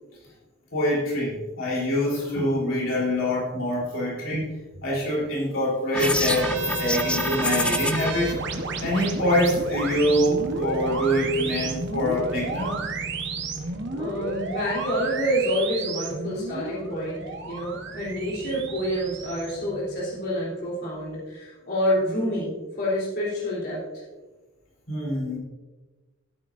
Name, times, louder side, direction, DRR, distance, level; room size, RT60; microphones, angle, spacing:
voice 1, 0.7-4.5 4.8-8.4 8.8-12.8 24.9-25.4, equal, 65° left, -5 dB, 3.6 m, -25 dB
sound 1, 5.9-8.1, left 2 dB, 5° left, 0.4 m, -27 dB
sound 2, 6.0-20.5, right 3 dB, 60° right, 1.2 m, -32 dB
voice 2, 13.9-23.8, equal, 50° left, -7 dB, 3.6 m, -28 dB
15.0 x 9.2 x 2.6 m, 1.2 s
head